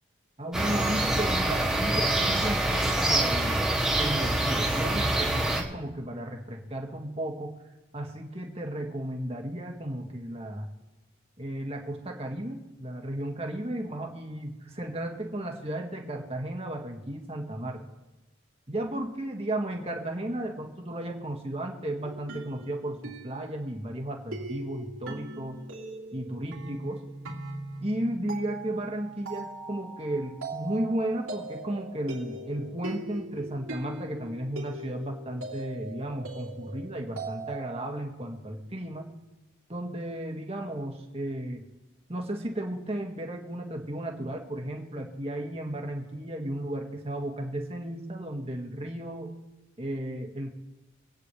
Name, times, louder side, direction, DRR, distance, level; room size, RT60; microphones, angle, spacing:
voice 1, 0.4-3.7 4.0-7.6 7.9-10.7 11.4-17.8 18.7-25.6 26.1-27.0 27.8-39.1 39.7-41.6 42.1-49.3 49.8-50.5, right 1 dB, 30° right, 1 dB, 1.9 m, -34 dB
sound 1, 0.5-5.6, right 1 dB, 5° right, 2.0 m, -25 dB
sound 2, 22.0-37.9, right 2 dB, 80° right, 2.9 m, -41 dB
26.5 x 9.4 x 3.3 m, 1.1 s
head